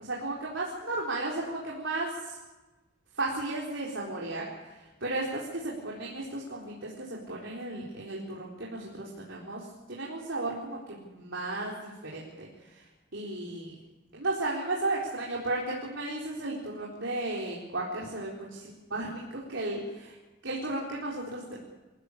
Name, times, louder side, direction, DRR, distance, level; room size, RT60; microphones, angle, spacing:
voice 1, 0.1-2.4 3.1-13.8 14.1-18.5 18.9-20.2 20.4-21.6, right 2 dB, 70° right, -4 dB, 4.2 m, -34 dB
27.5 x 15.5 x 8.5 m, 1.1 s
head